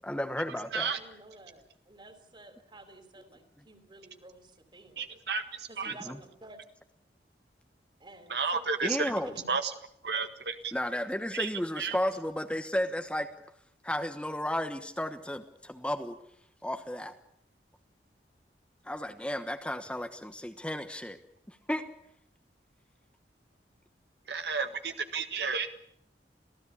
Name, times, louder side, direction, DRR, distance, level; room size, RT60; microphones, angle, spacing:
voice 1, 0.0-0.9 5.9-6.2 8.8-9.4 10.7-13.3 13.8-16.2 16.6-17.1 18.8-21.2 21.5-21.9, left 1 dB, 5° left, 7 dB, 1.2 m, -33 dB
voice 2, 1.0-5.0 5.7-6.6 8.0-9.3, right 2 dB, 25° right, 9 dB, 3.5 m, -52 dB
voice 3, 5.0-5.9 8.3-9.1 9.5-9.7 10.0-10.7 11.3-11.5 11.8-11.9 24.3-25.7, right 5 dB, 65° right, 8 dB, 1.6 m, -32 dB
26.5 x 16.5 x 8.5 m, 0.70 s
head